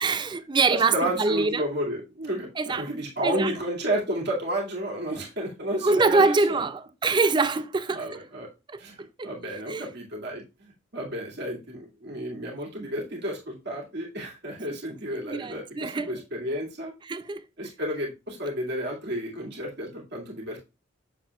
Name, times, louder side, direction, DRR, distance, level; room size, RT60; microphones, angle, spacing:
voice 1, 0.0-1.6 2.6-2.9 3.2-3.5 5.8-8.2 8.7-8.8 9.2-9.3 9.7-9.8 15.2-16.1 17.0-17.4, right 3 dB, 20° right, 0.4 m, -24 dB
voice 2, 0.7-6.6 7.9-8.5 8.8-9.0 9.2-16.9 17.6-20.6, right 1 dB, 55° right, 2.3 m, -31 dB
7.7 x 6.8 x 2.4 m
head